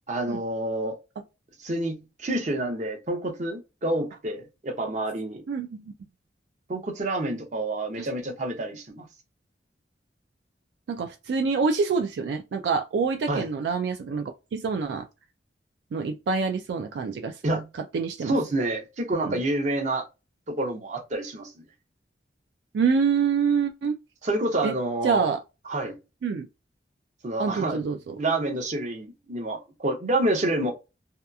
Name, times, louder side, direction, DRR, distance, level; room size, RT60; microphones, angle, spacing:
voice 1, 0.1-1.0 1.6-5.4 6.7-9.1 13.3-13.4 17.4-17.7 18.2-20.1 20.5-21.5 24.2-25.3 25.7-26.0 27.2-27.8 28.2-30.7, right 1 dB, 40° right, 0.6 m, -28 dB
voice 2, 5.5-5.8 8.0-8.1 10.9-15.1 15.9-17.4 17.9-18.3 19.1-19.4 22.7-24.0 24.6-24.7 25.0-25.4 26.2-26.5 27.4-28.2, right 5 dB, 75° right, 0.3 m, -26 dB
2.8 x 2.3 x 2.2 m
head